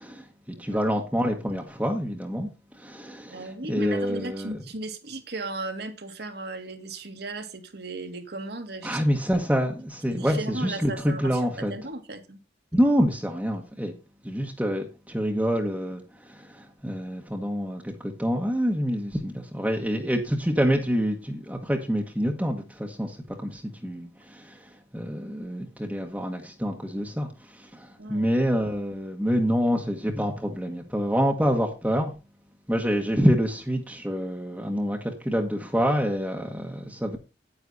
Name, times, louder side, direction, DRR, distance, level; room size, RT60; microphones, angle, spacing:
voice 1, 0.0-2.5 2.7-4.5 8.8-11.7 12.7-13.9 14.2-23.2 23.4-32.1 32.7-37.2, equal, 10° right, 1.3 m, -27 dB
voice 2, 0.5-0.9 3.3-9.4 10.1-12.4 28.0-28.3, right 2 dB, 65° right, 2.0 m, -36 dB
9.6 x 9.3 x 4.1 m
head